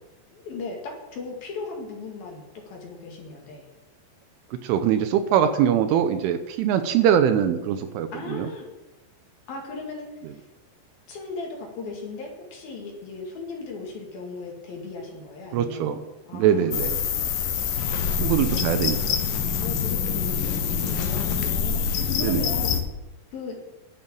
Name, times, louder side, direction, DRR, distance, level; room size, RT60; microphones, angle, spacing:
voice 1, 0.3-3.7 8.1-8.6 9.5-10.4 11.1-17.5 18.2-19.0 19.6-22.8 23.3-23.5, left 3 dB, 55° left, 0 dB, 3.3 m, -37 dB
voice 2, 4.6-8.5 15.5-16.0 16.3-17.0 18.2-19.2 22.2-22.5, right 9 dB, 80° right, 9 dB, 3.1 m, -22 dB
sound 1, 16.7-22.8, left 7 dB, 85° left, 1.9 m, -25 dB
11.5 x 7.7 x 8.7 m, 0.99 s
omnidirectional pair, 6.0 m